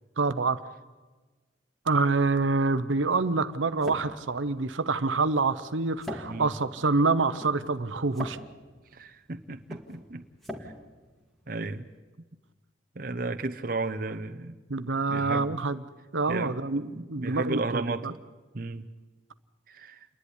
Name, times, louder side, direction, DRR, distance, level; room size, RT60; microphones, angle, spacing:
voice 1, 0.2-0.6 1.9-8.4 14.7-15.8 16.1-18.1, right 3 dB, 85° right, 12 dB, 0.8 m, -26 dB
sound 1, 2.8-12.0, equal, ahead, 2.0 m, -44 dB
voice 2, 8.9-10.2 10.6-10.7 11.5-11.9 12.9-14.6 15.1-15.6 16.3-16.5 16.9-18.2 18.5-18.9 19.7-20.1, right 3 dB, 45° right, 7 dB, 0.8 m, -34 dB
29.0 x 11.0 x 9.9 m, 1.3 s
head